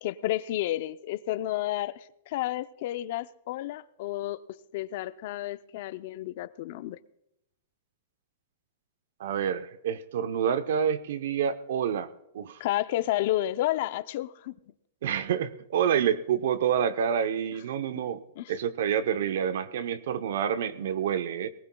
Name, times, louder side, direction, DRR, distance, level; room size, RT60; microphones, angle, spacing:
voice 1, 0.0-7.0 12.6-14.6 18.4-18.5, left 14 dB, 50° left, 0.5 m, -31 dB
voice 2, 9.2-12.6 15.0-18.2 18.5-21.5, right 8 dB, 65° right, 0.8 m, -28 dB
19.5 x 19.0 x 2.3 m
supercardioid pair, 165°, 0 cm